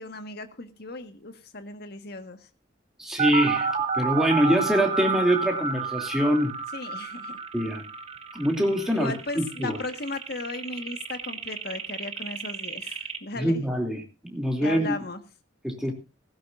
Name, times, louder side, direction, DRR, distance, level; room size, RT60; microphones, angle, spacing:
voice 1, 0.0-2.5 6.7-7.4 8.9-13.6 14.6-15.2, left 3 dB, 55° left, 9 dB, 1.6 m, -36 dB
voice 2, 3.0-3.7 3.9-6.6 7.5-7.8 8.3-9.8 13.4-14.9 15.6-15.9, equal, ahead, 1 dB, 2.8 m, -24 dB
sound 1, 3.2-13.2, right 5 dB, 30° right, 1.1 m, -31 dB
16.0 x 15.5 x 2.6 m, 0.28 s
head